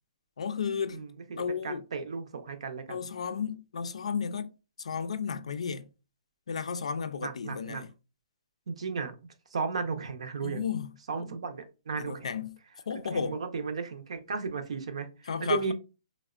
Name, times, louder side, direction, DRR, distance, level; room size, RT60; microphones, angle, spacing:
voice 1, 0.4-1.0 1.4-1.8 2.9-4.5 4.8-5.9 6.5-7.9 10.4-10.9 12.0-12.6 12.9-13.4 15.3-15.6, left 6 dB, 90° left, 0.4 m, -33 dB
voice 2, 0.9-3.0 7.2-7.8 8.7-9.1 9.5-10.6 11.1-12.4 13.0-15.7, right 4 dB, 75° right, 0.6 m, -35 dB
3.4 x 2.1 x 2.3 m
hypercardioid pair, 155°, 3 cm